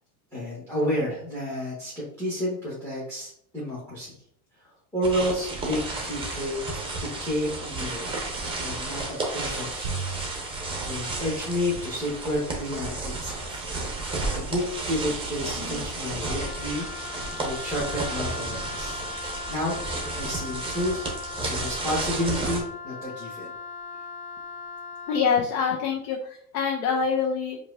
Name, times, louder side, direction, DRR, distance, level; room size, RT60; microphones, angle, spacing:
voice 1, 0.3-4.1 4.6-8.1 8.6-9.9 10.8-19.0 19.5-23.5, equal, 5° left, -8 dB, 1.5 m, -31 dB
sound 1, 5.0-22.6, right 2 dB, 10° right, 1.0 m, -32 dB
sound 2, 9.8-14.9, right 5 dB, 55° right, 0.7 m, -41 dB
voice 2, 15.6-15.9 25.1-27.6, left 6 dB, 70° left, 1 dB, 0.7 m, -26 dB
Wind instrument woodwind instrument, 16.2-25.3, left 4 dB, 30° left, 0.5 m, -39 dB
4.7 x 2.5 x 2.6 m, 0.66 s
supercardioid pair, 115°, 45 cm